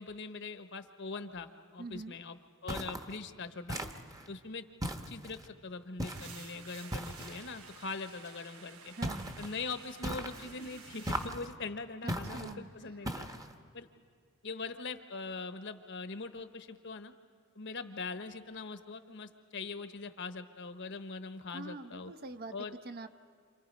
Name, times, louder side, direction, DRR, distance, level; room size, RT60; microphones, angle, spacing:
voice 1, 0.0-2.4 2.6-3.8 4.3-4.6 5.1-8.9 9.4-13.3 13.7-13.9 14.4-17.1 17.5-22.1 22.5-22.7, left 4 dB, 60° left, 9 dB, 1.0 m, -42 dB
voice 2, 1.8-2.1 8.9-9.3 12.0-12.7 21.5-22.5 22.8-23.1, right 2 dB, 45° right, 9 dB, 0.7 m, -44 dB
sound 1, 2.7-3.1 3.7-4.3 4.8-5.5 6.0-6.4 6.9-7.5 9.0-9.5 10.0-10.5 11.1-11.5 12.1-12.5 13.1-13.5, right 1 dB, 15° right, 1.0 m, -38 dB
sound 2, 6.0-11.3, right 6 dB, 90° right, 1.2 m, -52 dB
28.5 x 27.5 x 5.3 m, 2.2 s
head